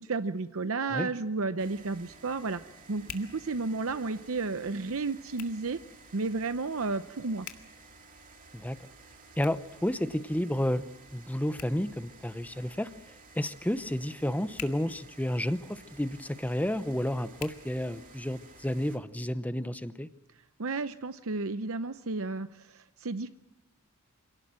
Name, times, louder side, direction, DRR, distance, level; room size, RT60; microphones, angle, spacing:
voice 1, 0.0-2.6 2.9-5.8 6.1-7.5 20.6-23.3, right 3 dB, 65° right, 11 dB, 0.7 m, -32 dB
Hands, 0.8-18.5, left 9 dB, 80° left, 2.0 m, -53 dB
sound 1, 1.6-19.0, right 3 dB, 35° right, 2.8 m, -54 dB
voice 2, 9.4-10.9 11.1-12.9 13.4-20.1, left 1 dB, 5° left, 13 dB, 0.8 m, -31 dB
27.0 x 18.0 x 7.6 m, 1.0 s
head